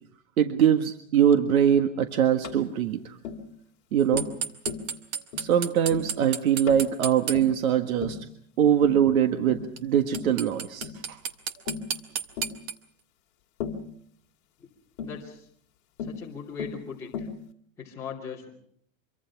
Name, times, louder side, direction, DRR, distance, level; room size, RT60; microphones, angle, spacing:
voice 1, 0.4-3.0 3.9-4.3 5.4-8.2 8.6-11.2, right 9 dB, 90° right, 7 dB, 1.7 m, -22 dB
Tap, 2.4-2.6 3.2-3.4 4.1-4.4 4.7-4.9 5.3-5.5 5.9-6.1 6.7-6.9 7.3-7.6 8.0-8.3 8.8-9.1 9.5-9.7 10.1-10.4 10.8-11.0 11.7-11.9 12.4-12.6 13.6-13.9 15.0-15.2 16.0-16.2 16.6-16.8 17.1-17.4, left 7 dB, 40° left, 2.6 m, -36 dB
sound 1, 4.2-7.4 9.8-9.9 10.1-12.7, right 7 dB, 25° right, 1.2 m, -31 dB
voice 2, 15.0-15.5 16.0-17.3 17.8-18.5, left 6 dB, 5° left, -7 dB, 2.8 m, -39 dB
25.5 x 23.5 x 5.9 m, 0.66 s
supercardioid pair, 175°, 41 cm